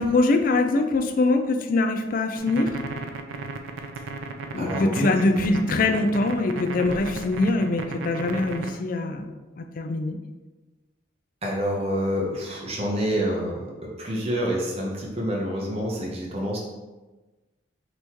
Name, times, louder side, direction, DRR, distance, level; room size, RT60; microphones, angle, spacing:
voice 1, 0.0-2.8 4.5-10.2, left 2 dB, 45° left, 7 dB, 0.3 m, -23 dB
sound 1, 2.4-8.8, right 3 dB, 85° right, 0.4 m, -35 dB
voice 2, 4.6-5.1 5.4-5.5 11.4-16.6, equal, 30° right, -3 dB, 0.8 m, -27 dB
5.4 x 3.0 x 2.9 m, 1.2 s
head